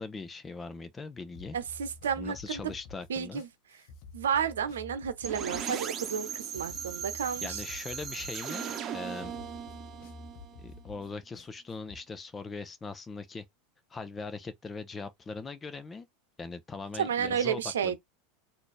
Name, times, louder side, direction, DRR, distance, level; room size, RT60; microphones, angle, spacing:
voice 1, 0.0-1.6 2.2-3.4 7.4-8.7 8.9-9.3 10.6-13.4 13.9-16.1 16.4-18.0, left 4 dB, 20° left, 0.9 m, -40 dB
sound 1, 1.3-12.0, left 3 dB, 60° left, 0.9 m, -50 dB
voice 2, 1.5-2.7 3.1-3.5 4.1-7.6 17.0-18.0, right 8 dB, 80° right, 0.8 m, -31 dB
sound 2, 5.2-11.0, right 8 dB, 35° right, 1.0 m, -38 dB
4.1 x 2.7 x 3.3 m
hypercardioid pair, 90°, 0 cm